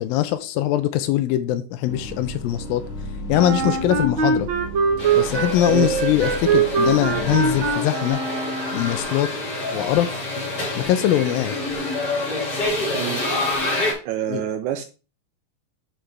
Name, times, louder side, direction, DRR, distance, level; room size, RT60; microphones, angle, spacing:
voice 1, 0.0-2.8 3.3-4.5 5.2-8.2 8.7-9.3 9.7-10.2 10.8-11.6 14.3-14.4, left 12 dB, 85° left, 12 dB, 2.4 m, -22 dB
sound 1, 1.9-7.7, equal, 50° left, 2.9 m, -34 dB
Wind instrument woodwind instrument, 3.3-9.0, right 5 dB, 60° right, 1.2 m, -23 dB
sound 2, 5.0-13.9, left 2 dB, 30° left, 2.7 m, -27 dB
voice 2, 12.9-13.2 14.0-14.8, right 11 dB, 85° right, 8 dB, 1.8 m, -27 dB
7.4 x 6.4 x 3.4 m, 0.34 s
omnidirectional pair, 4.1 m